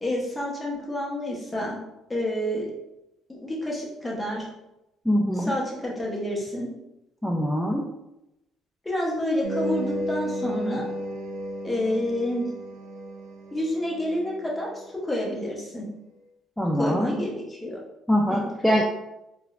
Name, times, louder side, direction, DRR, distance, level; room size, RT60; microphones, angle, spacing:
voice 1, 0.0-1.8 2.1-2.7 3.3-4.5 5.4-6.7 8.8-10.9 11.6-12.5 13.5-15.9 16.7-17.8 18.3-18.4, left 1 dB, 15° left, -3 dB, 1.0 m, -29 dB
voice 2, 5.1-5.5 7.2-7.9 16.6-17.2 18.1-18.8, equal, ahead, -1 dB, 0.4 m, -23 dB
sound 1, 9.4-14.9, equal, 80° right, 0.6 m, -33 dB
3.8 x 2.2 x 2.4 m, 0.90 s
cardioid pair, 95°, 0 cm